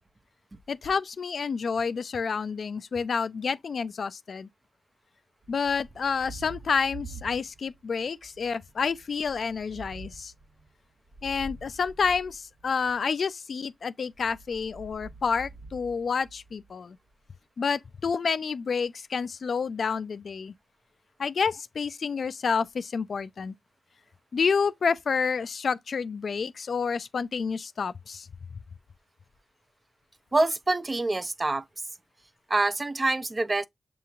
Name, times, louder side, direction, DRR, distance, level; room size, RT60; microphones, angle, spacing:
voice 1, 0.7-4.5 5.5-10.3 11.2-17.0 17.6-20.5 21.2-23.5 24.3-28.3, left 5 dB, 70° left, 0.3 m, -29 dB
Thunder, 5.4-7.8 8.2-13.0 14.0-16.7, right 3 dB, 65° right, 1.0 m, -47 dB
voice 2, 30.3-31.6 32.5-33.7, right 2 dB, 35° right, 0.4 m, -26 dB
6.9 x 2.9 x 2.4 m
cardioid pair, 70°, 0 cm